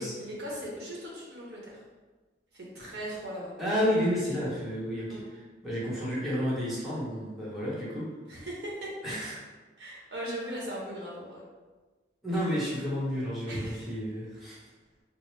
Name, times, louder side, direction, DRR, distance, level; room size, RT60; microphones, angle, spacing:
voice 1, 0.0-1.8 2.5-3.6 5.1-5.2 8.3-9.4 9.8-11.4 13.5-13.9, equal, 70° right, -4 dB, 0.9 m, -38 dB
voice 2, 3.6-8.1 9.0-9.4 12.2-14.6, equal, ahead, -9 dB, 0.9 m, -31 dB
4.4 x 2.0 x 3.1 m, 1.3 s
head